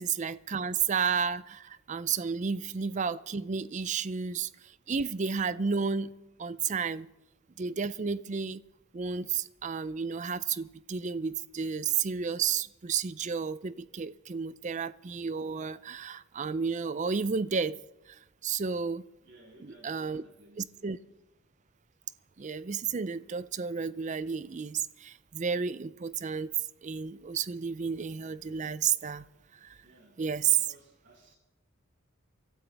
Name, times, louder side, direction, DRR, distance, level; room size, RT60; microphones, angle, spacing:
voice 1, 0.0-6.1 6.4-7.1 7.6-8.6 8.9-17.8 18.1-19.0 19.8-20.2 20.6-21.0 22.4-26.5 26.8-29.2 29.6-29.8 30.2-30.6, right 6 dB, 35° right, 0.4 m, -32 dB
voice 2, 19.2-21.1 29.8-30.2 30.5-31.4, right 1 dB, 55° right, 6.3 m, -58 dB
25.0 x 12.5 x 3.4 m
head